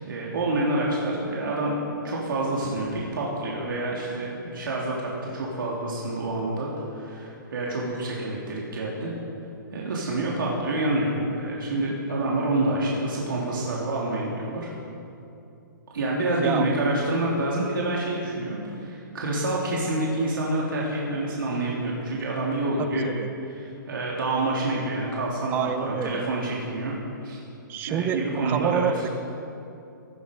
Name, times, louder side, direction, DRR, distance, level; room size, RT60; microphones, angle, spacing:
voice 1, 0.1-1.7 2.0-9.1 9.7-14.7 15.9-23.1 23.5-27.0 27.2-27.4 27.9-28.9, right 2 dB, 75° right, -4 dB, 3.4 m, -27 dB
voice 2, 22.8-23.3 25.5-26.2 27.7-28.2 28.4-29.1, right 8 dB, 15° right, 10 dB, 0.7 m, -28 dB
17.5 x 13.0 x 5.4 m, 2.8 s
hypercardioid pair, 160°, 11 cm